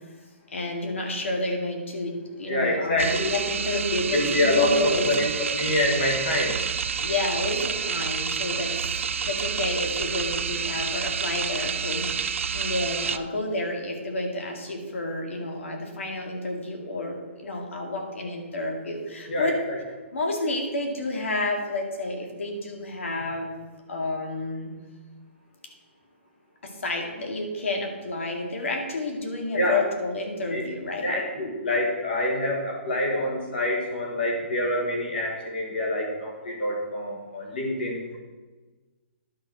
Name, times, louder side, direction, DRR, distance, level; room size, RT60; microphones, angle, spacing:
voice 1, 0.5-5.1 7.0-8.8 9.2-19.6 20.1-23.6 23.9-24.7 26.6-31.1, left 2 dB, 75° left, 2 dB, 2.2 m, -30 dB
voice 2, 2.5-3.4 4.1-6.6 19.3-19.8 29.6-29.8 30.5-30.6 31.0-38.2, left 1 dB, 45° left, 0 dB, 1.6 m, -26 dB
sound 1, 3.0-13.2, right 6 dB, 80° right, 0.5 m, -29 dB
11.0 x 4.5 x 6.3 m, 1.3 s
hypercardioid pair, 180°, 7 cm